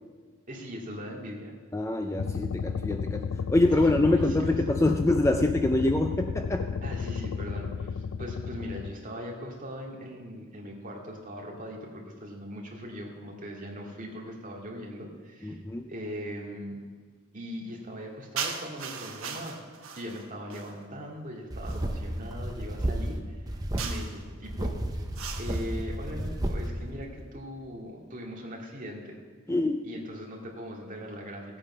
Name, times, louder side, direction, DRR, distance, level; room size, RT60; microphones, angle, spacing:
voice 1, 0.5-1.5 3.8-4.6 6.8-15.6 15.9-16.8 17.3-19.6 20.0-23.4 23.8-25.1 25.4-29.2 29.8-31.6, equal, 35° right, -2 dB, 2.2 m, -40 dB
voice 2, 1.7-6.8 15.4-15.9 29.5-29.9, left 2 dB, 15° left, 6 dB, 0.4 m, -25 dB
sound 1, 2.2-8.9, left 6 dB, 80° left, 0.4 m, -33 dB
sound 2, 18.4-20.8 21.6-21.9 23.8-24.2 25.1-25.7, right 6 dB, 65° right, 1.2 m, -38 dB
sound 3, 21.5-23.2 23.5-23.9 24.4-26.7, right 1 dB, 15° right, 0.7 m, -32 dB
16.0 x 8.6 x 5.5 m, 1.5 s
head